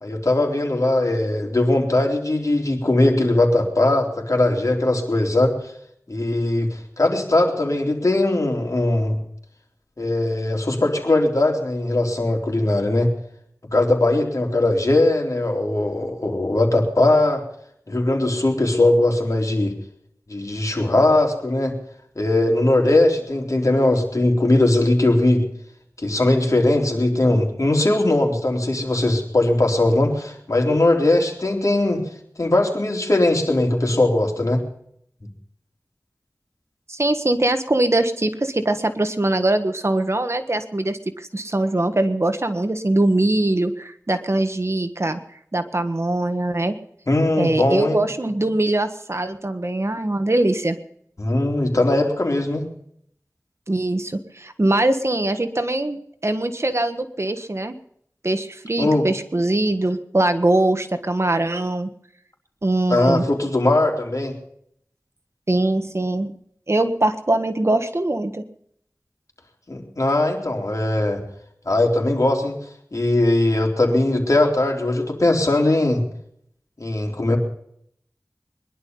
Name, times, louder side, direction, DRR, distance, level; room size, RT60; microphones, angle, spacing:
voice 1, 0.0-5.5 6.1-9.2 10.0-13.1 13.7-17.4 17.9-19.7 20.3-21.7 22.2-25.4 26.0-32.0 32.4-34.6 47.1-48.0 51.2-52.7 58.8-59.1 62.9-64.3 69.7-71.2 71.7-72.6 72.9-76.0 76.8-77.4, left 2 dB, 60° left, 1 dB, 3.8 m, -20 dB
voice 2, 36.9-45.2 45.5-46.8 47.4-50.8 53.7-57.7 58.2-61.9 62.6-63.2 65.5-66.3 66.7-68.4, right 2 dB, 45° right, 8 dB, 1.4 m, -22 dB
22.0 x 11.5 x 5.5 m, 0.69 s
wide cardioid pair, 50°, 6 cm